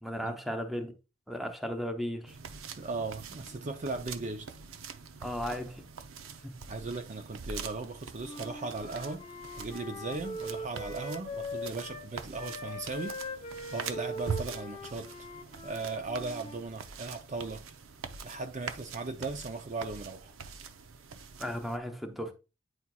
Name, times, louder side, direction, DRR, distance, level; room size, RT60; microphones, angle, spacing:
voice 1, 0.0-0.9 1.3-2.4 5.2-5.8 6.4-6.5 21.4-22.3, equal, ahead, 0.8 m, -35 dB
sound 1, 2.3-21.8, right 5 dB, 85° right, 0.6 m, -44 dB
voice 2, 2.8-4.5 6.7-9.2 9.6-13.1 13.7-15.1 15.6-17.7 18.2-20.3, right 3 dB, 35° right, 0.5 m, -37 dB
Wind instrument woodwind instrument, 8.2-12.1 12.3-16.6, left 1 dB, 25° left, 0.9 m, -41 dB
9.4 x 4.4 x 2.3 m
head